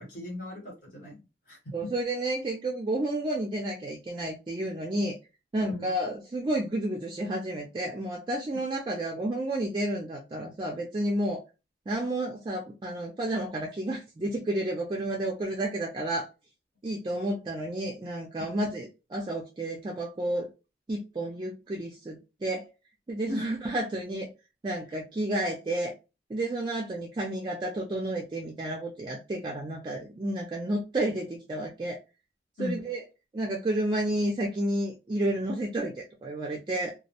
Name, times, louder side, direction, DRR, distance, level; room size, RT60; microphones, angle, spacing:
voice 1, 0.0-1.9 5.6-5.9 18.4-18.5 23.3-23.4 24.9-25.0 32.6-32.8, left 2 dB, 50° left, -3 dB, 0.9 m, -38 dB
voice 2, 1.7-5.2 5.5-11.4 11.9-16.3 16.8-20.5 20.9-22.7 23.1-24.3 24.6-25.9 26.3-32.0 32.6-33.0 33.3-36.9, right 1 dB, 25° right, 0 dB, 0.3 m, -31 dB
2.2 x 2.0 x 2.7 m, 0.29 s
head